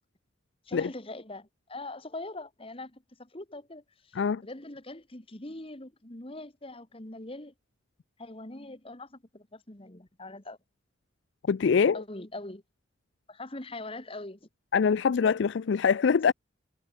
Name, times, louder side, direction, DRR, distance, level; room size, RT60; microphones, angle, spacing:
voice 1, 0.7-7.5 8.2-10.6 11.9-12.6 13.3-14.5, left 2 dB, 30° left, 1.7 m, -42 dB
voice 2, 11.5-12.0 14.7-16.3, left 6 dB, 60° left, 0.4 m, -24 dB
head